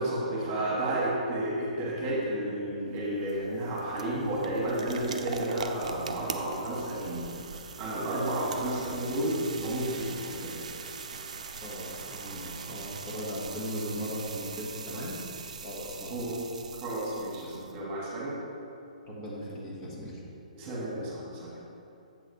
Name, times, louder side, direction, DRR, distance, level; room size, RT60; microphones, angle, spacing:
voice 1, 0.0-7.3 7.8-10.6 14.9-15.0 16.1-16.4 16.8-18.4 20.5-21.6, right 1 dB, 30° right, -5 dB, 1.5 m, -32 dB
sound 1, 2.9-17.8, right 5 dB, 55° right, 0.5 m, -41 dB
voice 2, 11.6-15.2 15.6-16.2 19.0-20.2, equal, 25° left, -6 dB, 1.5 m, -38 dB
7.6 x 4.0 x 5.3 m, 2.7 s
figure-of-eight pair, 125°, 4 cm